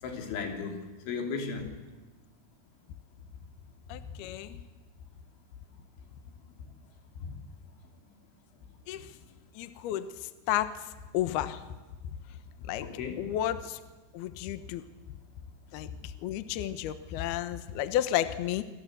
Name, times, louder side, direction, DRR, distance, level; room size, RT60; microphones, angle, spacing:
voice 1, 0.0-1.7 7.2-7.3 12.8-13.2, left 5 dB, 90° left, 3 dB, 5.7 m, -35 dB
voice 2, 3.9-4.6 8.9-9.0 9.6-10.1 10.5-10.7 11.1-11.6 12.7-12.8 13.2-13.8 14.1-14.8 15.7-15.9 16.2-18.6, left 12 dB, 70° left, 11 dB, 2.7 m, -31 dB
27.5 x 25.5 x 7.9 m, 1.2 s
omnidirectional pair, 5.2 m